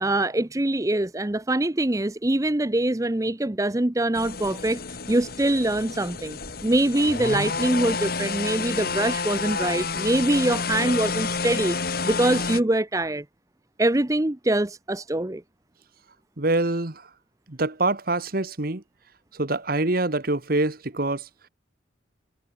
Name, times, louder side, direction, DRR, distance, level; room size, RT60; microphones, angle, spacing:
voice 1, 0.0-4.8 5.1-6.4 6.6-13.2 13.8-15.4, right 1 dB, 15° right, 0.7 m, -24 dB
sound 1, 4.1-12.6, left 4 dB, 50° left, 1.8 m, -29 dB
voice 2, 16.4-17.1 17.5-18.8 19.3-21.3, right 2 dB, 50° right, 1.5 m, -25 dB
head